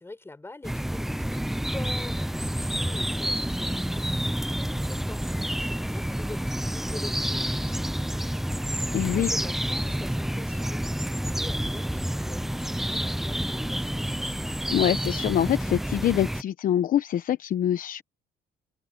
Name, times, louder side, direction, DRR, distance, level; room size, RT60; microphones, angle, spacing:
voice 1, 0.0-8.4 8.9-14.2, left 2 dB, 15° left, 6.6 m, -45 dB
sound 1, 0.6-16.4, equal, ahead, 0.4 m, -29 dB
voice 2, 8.9-9.3 14.7-18.0, left 10 dB, 55° left, 1.0 m, -25 dB
cardioid pair, 110°, 17 cm